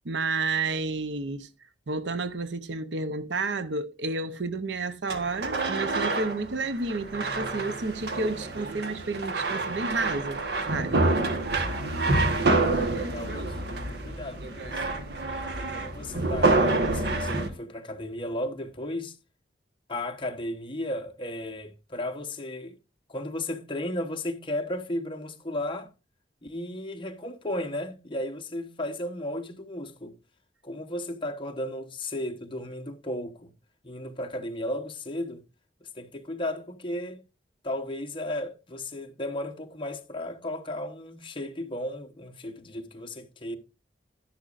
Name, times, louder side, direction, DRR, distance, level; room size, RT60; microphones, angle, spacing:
voice 1, 0.0-1.5 1.9-10.4 10.7-11.0, right 3 dB, 85° right, 0.8 m, -31 dB
sound 1, 5.1-17.5, right 2 dB, 65° right, 1.4 m, -27 dB
voice 2, 11.6-12.3 12.7-15.0 15.5-19.2 19.9-22.8 23.1-25.9 26.4-30.1 30.6-33.5 33.8-35.4 35.8-37.2 37.6-43.6, left 1 dB, 30° left, 1.2 m, -35 dB
11.5 x 10.5 x 2.5 m
head